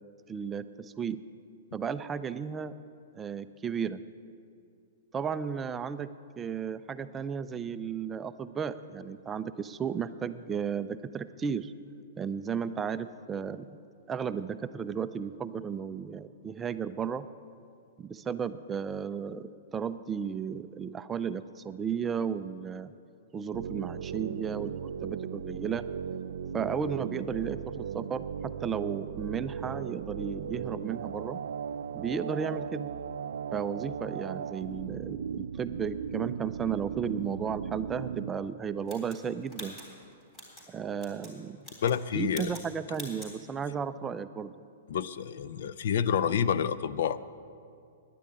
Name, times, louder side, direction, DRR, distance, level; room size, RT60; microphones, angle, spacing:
voice 1, 0.3-1.2 1.7-2.7 3.1-4.0 5.1-11.7 12.2-13.7 14.1-17.3 18.0-22.9 23.3-25.9 26.5-31.4 31.9-32.9 33.5-39.8 40.7-41.6 42.1-44.5, right 7 dB, 15° right, 12 dB, 0.4 m, -34 dB
sound 1, 23.5-38.3, right 7 dB, 80° right, 0.4 m, -37 dB
sound 2, 38.9-40.7 41.0-41.3 41.6-42.0 42.3-42.7 42.9-43.3, right 1 dB, 20° left, 3.8 m, -45 dB
voice 2, 41.8-42.5 44.9-47.2, left 8 dB, 65° left, 15 dB, 0.5 m, -28 dB
10.5 x 10.0 x 8.8 m, 2.4 s
hypercardioid pair, 155°, 0 cm